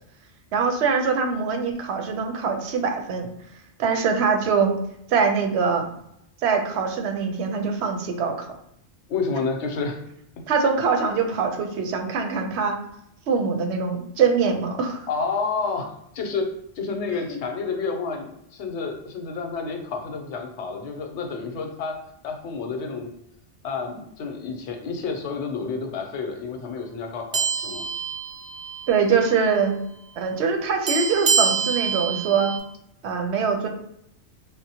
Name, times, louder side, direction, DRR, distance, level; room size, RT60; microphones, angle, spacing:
voice 1, 0.5-3.3 3.8-4.7 5.1-5.9 6.4-8.5 10.5-12.8 13.3-15.1 17.3-17.4 28.9-29.8 30.2-32.6 33.0-33.7, right 5 dB, 80° right, 4 dB, 0.8 m, -23 dB
voice 2, 9.1-10.0 15.1-16.5 16.8-22.0 22.2-23.1 23.6-27.9, left 4 dB, 85° left, 4 dB, 0.9 m, -30 dB
sound 1, 27.3-29.0 29.3-29.5 30.9-32.6, right 6 dB, 55° right, 0.5 m, -26 dB
3.7 x 2.0 x 2.7 m, 0.76 s
omnidirectional pair, 1.1 m